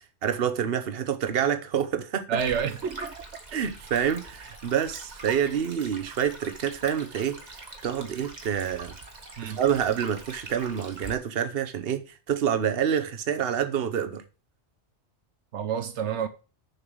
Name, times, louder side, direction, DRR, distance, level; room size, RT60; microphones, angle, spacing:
voice 1, 0.2-2.4 3.5-8.9 9.4-14.2, right 8 dB, 60° right, 1.1 m, -27 dB
voice 2, 2.3-3.2 9.4-9.6 15.5-16.3, right 7 dB, 85° right, 1.1 m, -29 dB
Stream, 2.4-11.1, right 2 dB, 40° right, 1.5 m, -43 dB
6.7 x 5.8 x 6.1 m
omnidirectional pair, 1.2 m